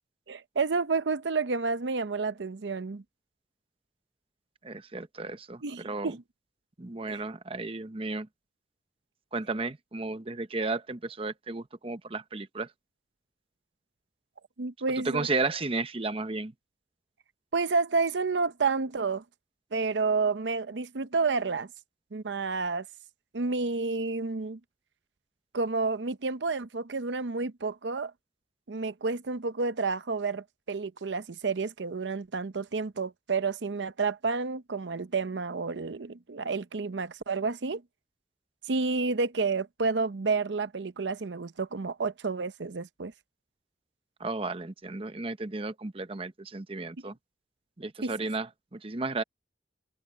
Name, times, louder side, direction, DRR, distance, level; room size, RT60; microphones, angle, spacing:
voice 1, 0.3-3.0 5.6-6.2 7.1-7.2 14.6-15.3 17.5-19.2 19.7-21.7 22.1-22.9 23.3-24.6 25.5-28.1 28.7-37.8 38.7-43.1 48.0-48.1, right 4 dB, 80° right, 0.7 m, -30 dB
voice 2, 4.6-6.1 6.8-8.3 9.3-12.7 15.0-16.5 44.2-47.1 47.8-49.2, right 3 dB, 30° right, 0.8 m, -33 dB
head